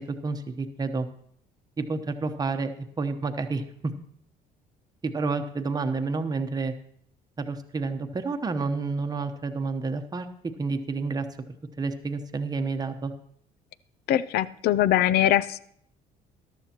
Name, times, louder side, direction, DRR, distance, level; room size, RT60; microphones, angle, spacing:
voice 1, 0.2-1.1 1.8-3.9 5.0-6.7 7.4-10.3 10.6-11.3 11.8-13.1, right 4 dB, 25° right, 7 dB, 1.0 m, -29 dB
voice 2, 14.1-15.6, left 12 dB, 70° left, 18 dB, 0.5 m, -22 dB
14.0 x 12.0 x 3.0 m, 0.66 s
cardioid pair, 110°, 17 cm